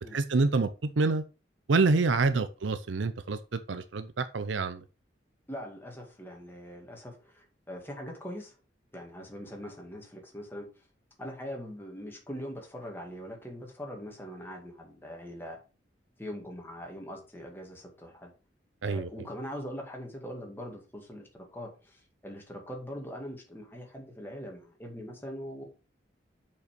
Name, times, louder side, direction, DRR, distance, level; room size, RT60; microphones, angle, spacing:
voice 1, 0.1-0.7 1.0-1.2 1.7-4.8 18.8-19.1, right 3 dB, 80° right, 11 dB, 0.6 m, -27 dB
voice 2, 5.5-8.6 8.9-10.8 11.2-15.6 16.2-18.3 18.9-25.6, equal, 10° left, 0 dB, 2.2 m, -42 dB
6.6 x 5.5 x 5.1 m, 0.33 s
head